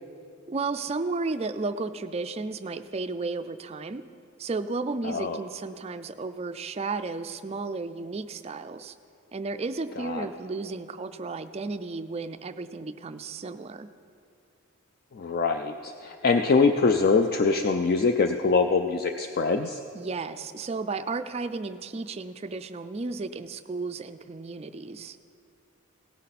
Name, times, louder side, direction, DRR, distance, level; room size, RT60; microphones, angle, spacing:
voice 1, 0.5-4.0 4.4-8.9 9.3-13.9 19.9-25.2, right 3 dB, 30° right, 11 dB, 0.3 m, -33 dB
voice 2, 5.0-5.4 10.0-10.3 15.1-19.8, left 4 dB, 45° left, 6 dB, 0.4 m, -24 dB
17.0 x 9.6 x 4.1 m, 2.5 s
head